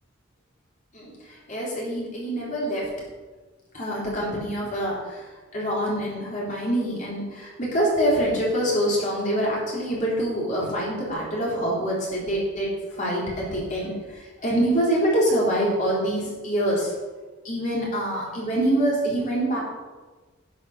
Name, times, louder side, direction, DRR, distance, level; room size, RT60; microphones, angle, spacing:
voice 1, 1.5-2.9 3.7-5.2 5.5-16.9 17.4-19.6, right 1 dB, 35° left, -5 dB, 3.7 m, -25 dB
11.0 x 7.1 x 6.7 m, 1.3 s
head